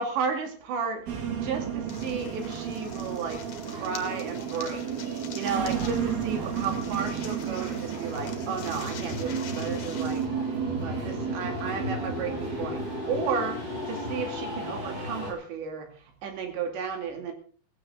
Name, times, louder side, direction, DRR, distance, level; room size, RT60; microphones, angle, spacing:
voice 1, 0.0-17.3, right 5 dB, 80° right, 4 dB, 4.7 m, -33 dB
sound 1, 1.1-15.0, right 8 dB, 60° right, 3.9 m, -33 dB
sound 2, 1.9-10.3, left 7 dB, 50° left, 2.6 m, -45 dB
sound 3, 1.9-15.3, left 2 dB, 30° right, 5.2 m, -38 dB
16.5 x 16.0 x 3.9 m, 0.42 s
omnidirectional pair, 5.1 m